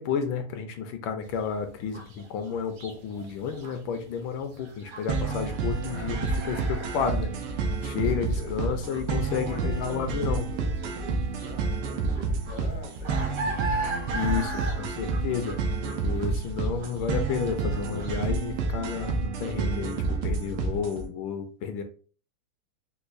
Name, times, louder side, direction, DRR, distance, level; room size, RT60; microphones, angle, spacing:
voice 1, 0.0-7.3 7.8-10.5 14.1-21.8, left 6 dB, 75° left, 7 dB, 1.2 m, -31 dB
sound 1, 1.3-18.3, right 2 dB, 65° right, 0.8 m, -39 dB
sound 2, 5.1-21.1, right 4 dB, 90° right, 1.5 m, -29 dB
voice 2, 8.0-8.7 9.1-13.6, left 2 dB, 35° left, 0 dB, 0.4 m, -43 dB
4.6 x 2.2 x 2.5 m, 0.40 s
omnidirectional pair, 2.3 m